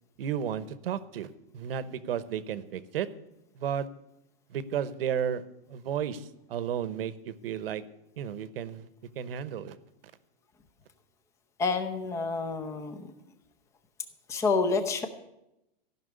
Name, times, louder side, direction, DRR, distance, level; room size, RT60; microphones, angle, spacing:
voice 1, 0.2-3.1 3.6-3.9 4.5-5.4 5.7-7.8 8.2-8.9 9.1-9.8, right 9 dB, 75° right, 14 dB, 1.0 m, -33 dB
voice 2, 11.6-13.1 14.3-15.1, left 4 dB, 10° left, 9 dB, 0.7 m, -28 dB
15.0 x 6.0 x 9.6 m, 0.90 s
supercardioid pair, 170°, 29 cm